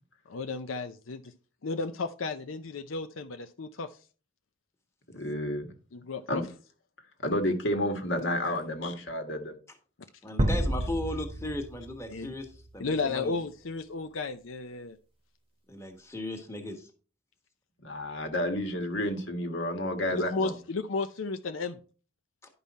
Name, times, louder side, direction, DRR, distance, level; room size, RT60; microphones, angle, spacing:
voice 1, 0.3-1.2 1.6-3.9 5.9-6.4 8.4-8.6 12.1-12.3 12.8-15.0 20.1-21.8, left 4 dB, 85° left, 0.6 m, -33 dB
voice 2, 5.1-5.7 6.3-6.4 7.2-9.5 17.8-20.5, left 1 dB, 70° left, 1.8 m, -30 dB
voice 3, 10.2-13.4 15.7-16.9, left 1 dB, 15° left, 1.5 m, -37 dB
sound 1, 10.4-12.8, right 1 dB, 30° right, 0.9 m, -30 dB
11.0 x 5.5 x 4.2 m
head